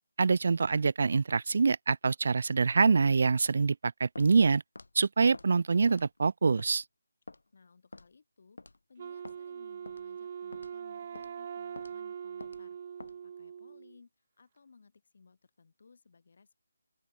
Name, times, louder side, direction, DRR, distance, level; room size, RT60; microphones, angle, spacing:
voice 1, 0.2-4.6 4.9-6.8, right 4 dB, 55° right, 0.6 m, -25 dB
Walk footsteps, 4.2-4.3 4.8-4.9 5.3-5.5 5.9-6.2 6.6-6.7 7.3-7.4 7.9-8.1 8.6-8.8 9.2-9.4 9.9-10.0 10.5-10.7 11.1-11.3 11.8-11.9 12.4-12.6 13.0-13.2, left 2 dB, 75° left, 2.6 m, -48 dB
voice 2, 7.5-16.6, left 4 dB, 55° left, 6.9 m, -61 dB
Wind instrument woodwind instrument, 9.0-14.0, right 7 dB, 40° right, 2.2 m, -42 dB
open air
figure-of-eight pair, 155°, 0 cm